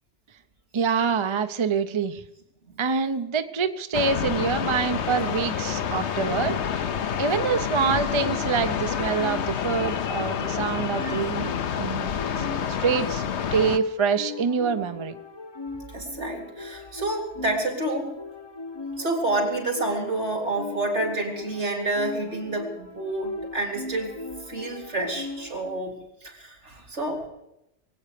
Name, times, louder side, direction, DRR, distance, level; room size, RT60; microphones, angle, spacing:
voice 1, 0.7-2.2 2.8-6.9 7.2-11.5 11.8-12.1 12.4-13.2 13.5-15.2, right 5 dB, 30° right, 9 dB, 0.6 m, -26 dB
sound 1, 3.9-13.8, left 8 dB, 70° left, 1.1 m, -28 dB
sound 2, 7.7-25.8, left 3 dB, 25° left, 0.7 m, -39 dB
voice 2, 11.0-11.3 15.9-18.1 19.0-24.1 24.5-27.2, right 2 dB, 75° right, 1 dB, 3.8 m, -29 dB
22.5 x 8.7 x 6.7 m, 0.85 s
omnidirectional pair, 1.2 m